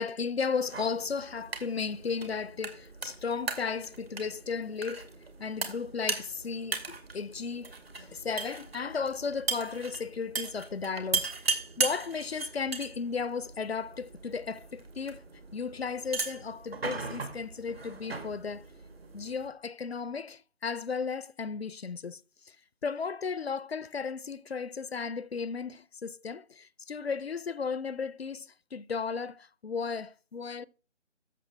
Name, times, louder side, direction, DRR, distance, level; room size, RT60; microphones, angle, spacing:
voice 1, 0.0-5.1 5.4-11.3 11.8-15.2 15.5-18.6 19.1-22.6 22.8-30.6, left 5 dB, 60° left, 0.6 m, -35 dB
sound 1, 0.6-19.5, right 4 dB, 55° right, 2.4 m, -38 dB
13.0 x 7.1 x 3.3 m
figure-of-eight pair, 160°, 36 cm